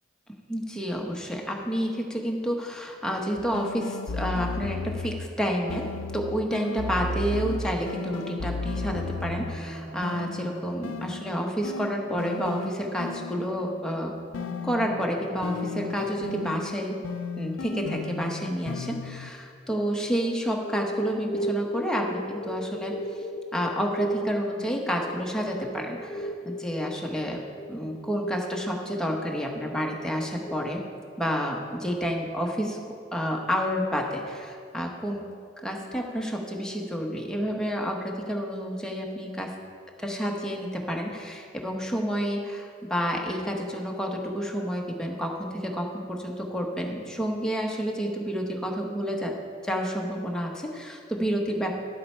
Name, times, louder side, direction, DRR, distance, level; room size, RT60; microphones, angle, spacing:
voice 1, 0.5-14.2 14.6-17.0 17.4-23.2 23.5-27.4 27.7-30.8 31.2-35.2 35.6-39.5 40.0-49.3 49.6-51.8, equal, 5° left, 0 dB, 1.0 m, -29 dB
sound 1, 3.4-5.3 5.7-9.7 10.0-13.7 14.3-19.3, left 4 dB, 85° left, 0.4 m, -35 dB
sound 2, 6.6-16.4, right 1 dB, 45° right, 0.7 m, -44 dB
sound 3, 20.5-30.7, equal, 30° left, 0.5 m, -36 dB
11.0 x 7.7 x 4.4 m, 2.3 s
head